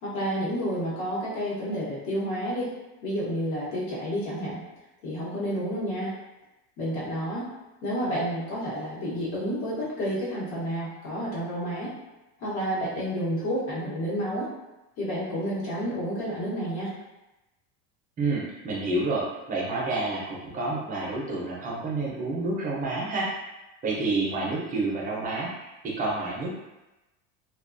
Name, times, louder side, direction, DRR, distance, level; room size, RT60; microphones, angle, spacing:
voice 1, 0.0-2.7 3.0-4.6 5.0-6.1 6.8-7.5 7.8-11.9 12.4-14.5 15.0-16.9, equal, 60° left, -7 dB, 1.1 m, -30 dB
voice 2, 18.2-23.3 23.8-26.5, right 2 dB, 25° right, -4 dB, 0.5 m, -29 dB
2.3 x 2.2 x 2.5 m, 1.0 s
cardioid pair, 150°, 34 cm